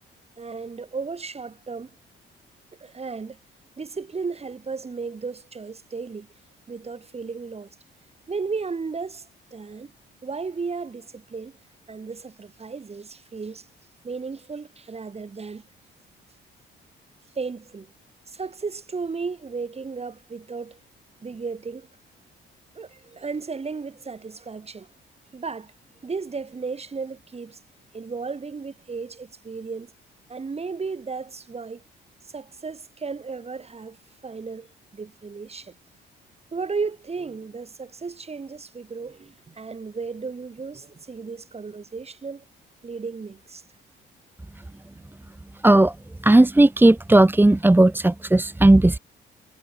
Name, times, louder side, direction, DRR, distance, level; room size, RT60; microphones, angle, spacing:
voice 1, 0.4-1.9 2.8-3.4 3.8-6.3 6.7-7.7 8.3-9.3 9.5-9.9 10.2-11.6 11.9-13.7 14.0-15.6 17.4-17.9 18.3-20.8 21.2-21.9 22.7-24.9 25.3-25.7 26.0-27.6 27.9-29.9 30.3-31.8 32.3-34.0 34.2-34.7 34.9-35.7 36.5-42.4 42.8-43.6 44.9-45.0, right 4 dB, 30° right, 4.1 m, -34 dB
voice 2, 45.6-45.9 46.2-49.0, right 2 dB, 10° right, 1.3 m, -15 dB
cardioid pair, 90°, 20 cm